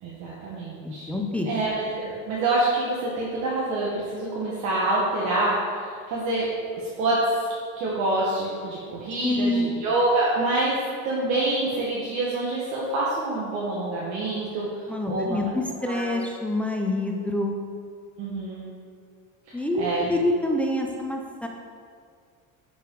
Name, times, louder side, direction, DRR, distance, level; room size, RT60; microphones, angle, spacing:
voice 1, 0.0-1.1 1.5-6.5 7.0-7.5 7.8-14.7 15.1-15.4 15.8-16.1 18.2-18.7 19.5-20.1, right 2 dB, 55° right, -6 dB, 1.6 m, -26 dB
voice 2, 0.8-1.5 9.2-9.7 14.9-17.5 19.5-21.5, left 1 dB, 5° left, 1 dB, 0.5 m, -26 dB
10.5 x 5.1 x 4.7 m, 2.1 s
cardioid pair, 170°, 35 cm